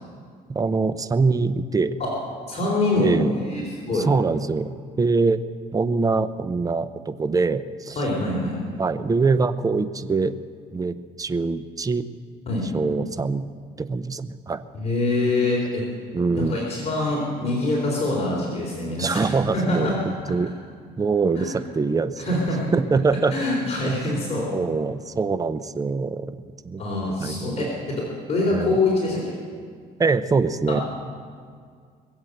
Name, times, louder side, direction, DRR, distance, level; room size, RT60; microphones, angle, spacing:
voice 1, 0.5-2.0 3.0-3.4 3.9-4.7 5.0-5.4 5.7-8.0 8.8-10.3 10.7-12.1 12.7-13.5 13.8-14.6 16.1-16.6 19.0-20.5 21.0-22.3 22.7-23.4 23.8-24.1 24.5-26.4 26.6-27.7 28.5-28.8 30.0-30.8, right 4 dB, 20° right, 13 dB, 0.6 m, -24 dB
voice 2, 2.5-3.2 3.4-4.1 8.0-8.5 12.5-12.7 14.7-15.9 16.4-20.0 21.4-21.5 22.2-22.7 23.3-24.5 26.8-28.0 28.3-29.3 30.7-30.8, left 2 dB, 40° left, -3 dB, 3.7 m, -24 dB
21.5 x 8.0 x 7.9 m, 2.1 s
cardioid pair, 110°, 17 cm